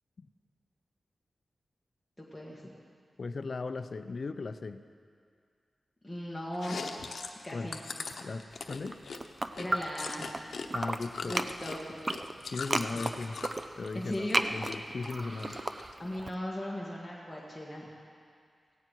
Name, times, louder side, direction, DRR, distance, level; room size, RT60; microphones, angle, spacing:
voice 1, 2.2-2.6 6.0-6.8 7.4-7.8 9.6-10.3 11.2-11.8 12.4-12.5 12.9-13.0 13.9-14.5 16.0-17.9, left 1 dB, 5° left, -6 dB, 1.8 m, -37 dB
voice 2, 3.2-4.8 7.5-7.7 8.2-9.0 10.7-11.4 12.5-13.4 13.8-15.6, left 3 dB, 50° left, 11 dB, 0.6 m, -37 dB
Chewing mastication, 6.5-10.7 10.9-13.6 14.0-14.8 15.0-15.9, left 4 dB, 70° left, 0.9 m, -41 dB
sound 1, 8.8-10.4 10.7-16.3, right 2 dB, 30° right, 0.6 m, -34 dB
17.5 x 16.5 x 4.7 m, 2.3 s
wide cardioid pair, 125°, 0 cm